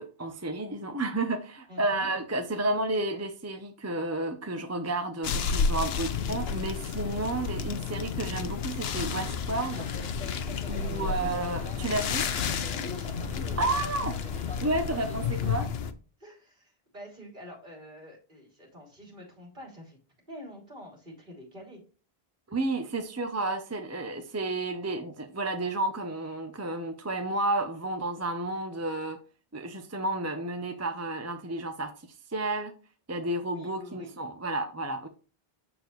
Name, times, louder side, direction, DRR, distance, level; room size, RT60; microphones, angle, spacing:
voice 1, 0.0-9.9 10.7-12.3 13.6-14.2 14.6-15.7 22.5-29.2 29.5-31.9 32.3-32.7 33.1-35.1, right 2 dB, 20° right, 6 dB, 0.6 m, -31 dB
voice 2, 1.7-2.1 10.8-11.4 12.7-13.7 16.2-20.0 20.3-21.8 33.5-34.2, left 1 dB, 50° right, -1 dB, 3.2 m, -46 dB
sound 1, 5.2-15.9, left 6 dB, 80° left, 0.9 m, -31 dB
sound 2, 9.6-15.6, left 1 dB, 10° left, 0.9 m, -45 dB
6.8 x 6.7 x 3.1 m, 0.35 s
omnidirectional pair, 1.0 m